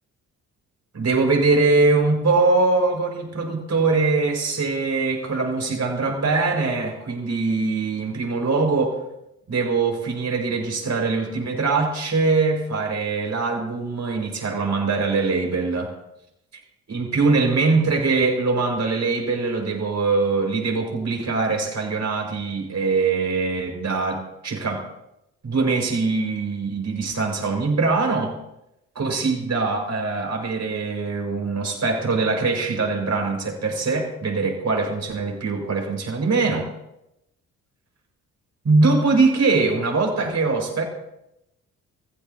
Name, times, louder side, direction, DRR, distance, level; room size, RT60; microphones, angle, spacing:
voice 1, 0.9-9.0 9.5-15.9 16.9-24.9 25.4-28.3 28.9-36.7 38.6-40.9, right 3 dB, 45° right, 2 dB, 5.9 m, -22 dB
22.0 x 15.5 x 3.0 m, 0.87 s
hypercardioid pair, 45°, 38 cm